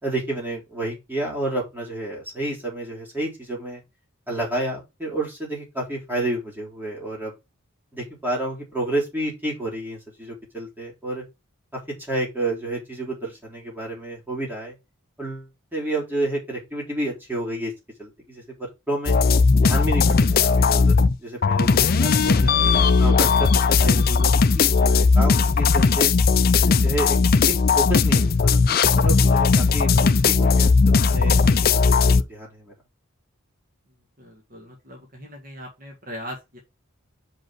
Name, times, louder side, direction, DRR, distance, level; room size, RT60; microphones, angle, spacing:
voice 1, 0.0-3.8 4.3-7.3 7.9-11.2 12.1-14.7 15.2-17.7 18.0-18.4 18.9-19.2 19.6-20.1 20.4-22.5 23.0-26.1 26.7-27.2 27.4-31.4 31.7-32.7, right 1 dB, 10° right, -3 dB, 3.7 m, -30 dB
sound 1, 19.1-21.2 21.4-32.2, left 4 dB, 45° left, 0.4 m, -18 dB
voice 2, 34.2-36.6, equal, 40° right, 1 dB, 1.8 m, -39 dB
5.5 x 5.5 x 6.1 m, 0.24 s
head